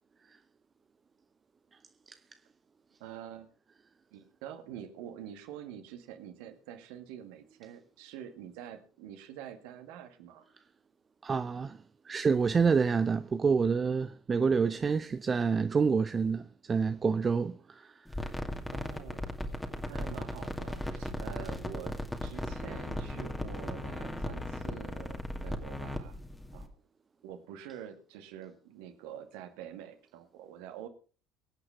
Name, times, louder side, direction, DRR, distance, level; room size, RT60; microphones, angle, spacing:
voice 1, 3.0-3.5 4.1-10.5 18.7-19.3 19.9-26.2 26.5-26.7 27.2-30.9, right 10 dB, 60° right, 2.0 m, -46 dB
voice 2, 11.2-18.4, right 5 dB, 30° right, 0.7 m, -28 dB
sound 1, 18.1-26.7, left 1 dB, 10° left, 2.4 m, -37 dB
23.5 x 8.9 x 3.6 m
figure-of-eight pair, 60°, 0 cm